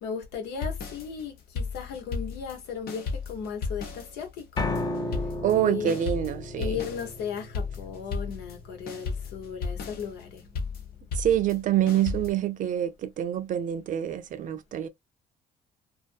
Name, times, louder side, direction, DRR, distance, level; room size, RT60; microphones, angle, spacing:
voice 1, 0.0-4.7 5.5-6.0 6.6-10.4, left 6 dB, 90° left, 1.0 m, -36 dB
sound 1, 0.6-2.6 2.9-8.6 8.9-12.3, left 4 dB, 65° left, 0.8 m, -34 dB
Piano, 4.6-10.7, left 2 dB, 25° left, 0.5 m, -36 dB
voice 2, 5.4-6.8 11.2-14.9, right 11 dB, 50° right, 0.5 m, -26 dB
2.5 x 2.3 x 2.5 m
cardioid pair, 110°, 17 cm